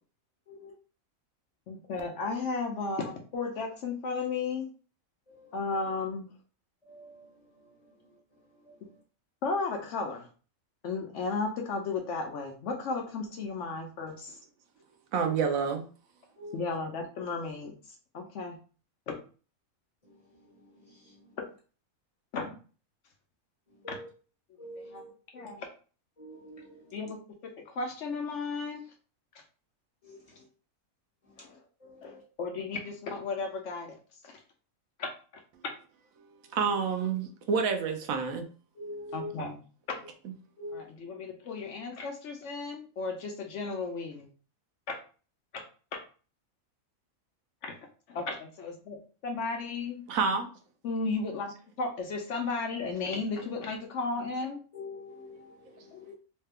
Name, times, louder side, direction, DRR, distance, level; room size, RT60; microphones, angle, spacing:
voice 1, 1.7-4.7 5.5-6.3 9.4-10.3 10.8-14.4 16.5-17.7 18.1-18.6 19.1-19.2 22.3-22.6 23.9-24.0 24.9-25.0 25.3-25.7 26.9-28.8 31.4-31.6 32.0-34.0 34.2-34.4 35.0-35.1 35.6-35.7 39.1-39.6 39.9-40.0 40.7-44.3 44.9-45.0 45.5-45.7 45.9-46.0 47.6-47.7 48.1-50.0 50.8-54.6 55.9-56.0, left 4 dB, 65° left, 0.9 m, -34 dB
voice 2, 5.3-5.6 6.9-7.3 8.6-8.7 16.4-16.6 20.0-21.4 23.7-24.1 24.6-25.5 26.2-27.0 30.0-30.4 31.4-31.5 31.8-32.2 38.7-39.3 40.6-40.8 54.7-56.1, left 1 dB, 30° left, 1.3 m, -46 dB
voice 3, 15.1-15.9 36.5-38.5 50.1-50.5, right 5 dB, 85° right, 1.0 m, -28 dB
3.2 x 2.2 x 3.4 m
omnidirectional pair, 1.4 m